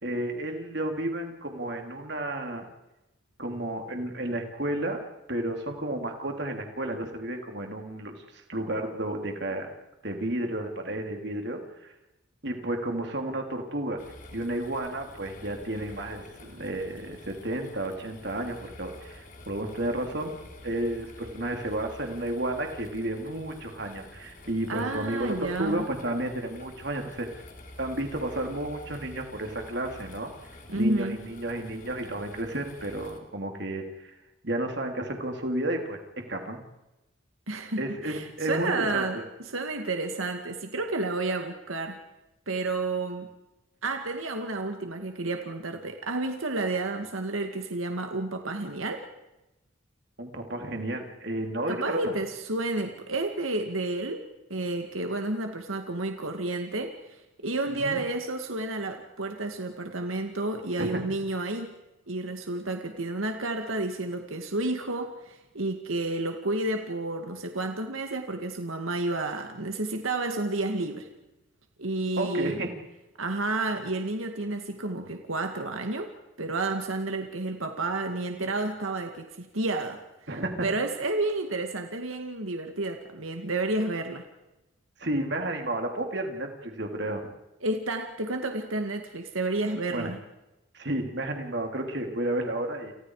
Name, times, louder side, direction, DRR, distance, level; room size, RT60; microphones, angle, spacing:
voice 1, 0.0-2.6 3.4-5.0 5.3-9.7 10.0-11.9 12.4-14.0 14.3-20.3 20.6-27.3 27.8-30.3 30.7-34.1 34.4-36.0 36.3-36.6 37.8-39.2 50.2-52.1 57.7-58.0 60.8-61.0 72.2-72.7 80.3-80.7 85.0-87.3 89.9-90.1 90.7-92.9, right 1 dB, 55° right, 3 dB, 3.5 m, -32 dB
sound 1, 14.0-33.2, left 1 dB, 40° left, 3.7 m, -48 dB
voice 2, 24.7-25.8 30.7-31.2 37.5-42.0 42.5-43.3 43.8-49.0 51.7-54.2 54.5-61.7 62.1-71.1 71.8-72.6 73.2-76.1 76.4-80.0 80.6-84.2 87.6-90.2, right 2 dB, 90° right, 4 dB, 2.1 m, -31 dB
29.5 x 29.5 x 5.0 m, 0.98 s
head